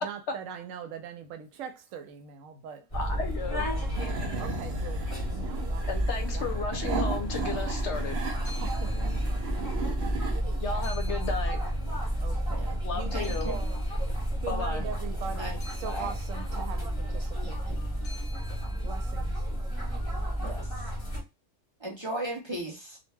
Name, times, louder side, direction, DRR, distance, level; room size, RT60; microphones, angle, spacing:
voice 1, 0.0-2.8 3.7-5.9 6.3-6.6 8.5-9.1 10.4-10.6 12.2-13.8 14.4-15.5 15.8-18.0 18.8-19.3, right 8 dB, 90° right, 1.0 m, -41 dB
voice 2, 2.9-3.7 5.9-8.2 10.6-11.6 12.8-13.5 14.5-14.8, left 4 dB, 70° left, 0.8 m, -34 dB
sound 1, 2.9-21.2, equal, 20° left, 1.0 m, -31 dB
sound 2, 3.9-10.4, right 6 dB, 65° right, 0.7 m, -37 dB
sound 3, 8.4-9.9 10.2-12.5 12.9-19.4, left 2 dB, 40° left, 0.4 m, -52 dB
voice 3, 13.1-13.6 15.2-15.6 15.8-16.1 20.4-20.9 21.8-23.0, right 1 dB, 35° right, 0.4 m, -37 dB
2.3 x 2.1 x 3.3 m
omnidirectional pair, 1.3 m